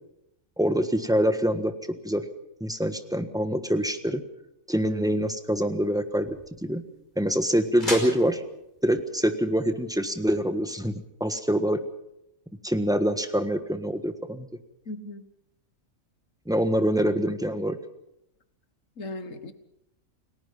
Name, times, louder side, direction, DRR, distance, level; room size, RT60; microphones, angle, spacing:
voice 1, 0.6-2.2 2.6-4.2 4.7-6.4 6.6-6.8 7.2-8.4 8.8-10.9 11.2-11.8 12.6-14.5 16.5-17.8, equal, 5° right, 8 dB, 1.3 m, -25 dB
sound 1, 5.1-11.0, left 1 dB, 30° left, 5.4 m, -40 dB
voice 2, 14.8-15.3 19.0-19.5, left 2 dB, 65° left, 10 dB, 1.7 m, -37 dB
29.0 x 18.0 x 5.6 m, 0.82 s
omnidirectional pair, 1.5 m